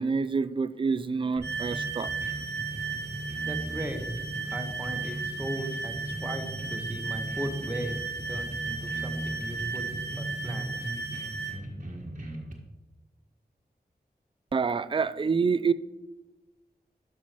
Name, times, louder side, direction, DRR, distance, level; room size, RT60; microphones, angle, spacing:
voice 1, 0.0-2.1 14.5-15.7, right 5 dB, 30° right, 0.3 m, -27 dB
sound 1, 1.4-12.5, right 1 dB, 50° right, 1.5 m, -38 dB
sound 2, 1.4-11.6, right 5 dB, 90° right, 0.8 m, -35 dB
voice 2, 3.4-4.0 4.5-8.0 8.3-11.1, equal, 10° right, 1.2 m, -38 dB
11.5 x 6.1 x 3.0 m
wide cardioid pair, 65°, 17 cm